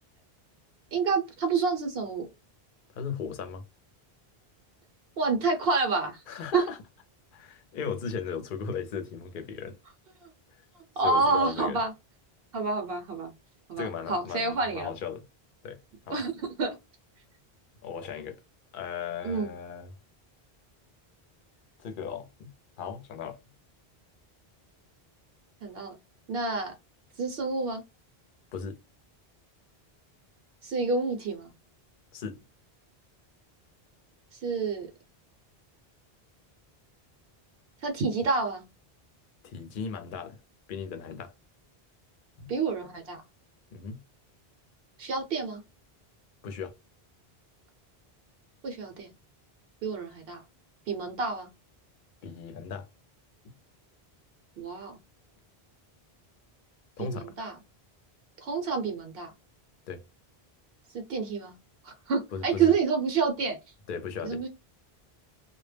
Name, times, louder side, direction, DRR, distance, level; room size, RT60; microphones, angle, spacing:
voice 1, 0.9-2.3 5.2-6.2 6.5-6.6 11.0-11.9 12.5-13.3 13.7-14.9 16.1-16.8 19.2-19.5 25.6-25.9 26.3-26.7 27.2-27.8 30.6-31.5 34.3-34.9 37.8-38.6 42.5-43.2 45.0-45.6 48.6-49.1 49.8-50.4 50.9-51.5 54.6-55.0 57.0-57.5 58.4-59.3 60.9-61.5 61.8-63.6 64.2-64.5, right 4 dB, 70° right, 0.8 m, -28 dB
voice 2, 2.9-3.6 6.3-6.8 7.3-9.8 10.5-10.6 11.0-11.8 13.8-15.3 15.6-15.8 16.1-16.2 17.8-18.4 18.7-19.9 21.8-23.4 28.5-28.8 32.1-32.4 39.4-40.4 40.7-41.3 42.4-42.5 43.7-44.0 46.4-46.7 52.2-52.9 53.4-53.5 57.0-57.3 59.9-60.0 62.3-62.7 63.9-64.4, left 6 dB, 60° left, 0.6 m, -37 dB
2.1 x 2.0 x 3.2 m
omnidirectional pair, 1.0 m